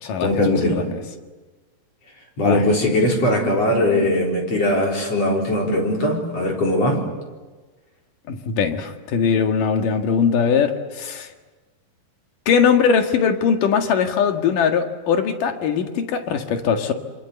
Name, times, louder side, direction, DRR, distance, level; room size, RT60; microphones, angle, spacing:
voice 1, 0.2-0.9 2.4-7.0, left 1 dB, 40° left, 0 dB, 5.2 m, -20 dB
voice 2, 8.3-11.3 12.5-16.9, left 6 dB, 60° left, 5 dB, 3.2 m, -20 dB
27.0 x 26.0 x 8.1 m, 1.3 s
omnidirectional pair, 4.6 m